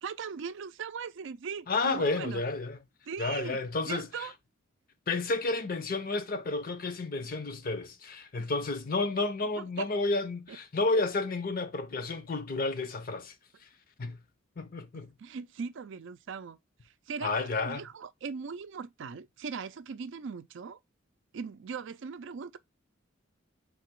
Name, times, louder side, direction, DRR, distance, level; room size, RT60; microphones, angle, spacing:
voice 1, 0.0-2.4 3.1-3.6 3.9-4.3 9.6-9.9 10.5-10.6 14.9-16.6 17.1-20.8 21.3-22.6, right 5 dB, 65° right, 0.4 m, -39 dB
voice 2, 1.7-2.8 3.2-4.3 5.1-13.3 14.0-14.2 14.6-15.1 17.2-17.8, left 3 dB, 45° left, 0.7 m, -31 dB
3.9 x 2.9 x 4.6 m
head